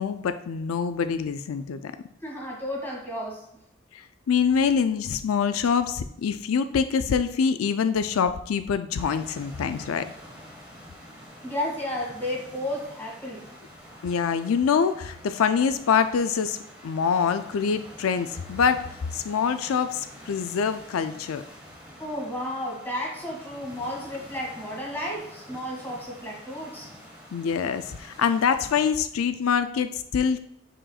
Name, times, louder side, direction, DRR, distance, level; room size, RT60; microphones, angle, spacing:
voice 1, 0.0-1.9 3.9-10.1 14.0-16.6 16.8-18.8 19.1-21.4 27.3-30.4, left 6 dB, 90° left, 11 dB, 0.4 m, -25 dB
voice 2, 2.2-3.5 11.4-13.4 22.0-26.9, left 1 dB, 10° left, -4 dB, 2.1 m, -32 dB
sound 1, 9.0-28.9, equal, 5° right, 1.6 m, -47 dB
8.7 x 5.0 x 2.4 m, 0.76 s
head